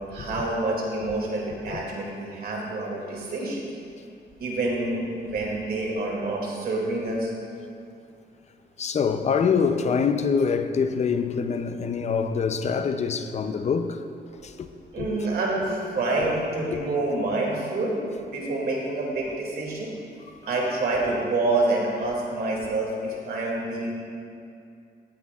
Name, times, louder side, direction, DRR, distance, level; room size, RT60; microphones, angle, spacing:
voice 1, 0.1-3.7 4.4-7.3 14.9-19.9 20.5-23.9, right 2 dB, 65° right, 2.3 m, -27 dB
voice 2, 8.8-14.0 14.4-14.7 15.0-15.3 16.7-16.8, left 6 dB, 40° left, 0.5 m, -25 dB
16.5 x 9.6 x 2.4 m
wide cardioid pair, 150°, 18 cm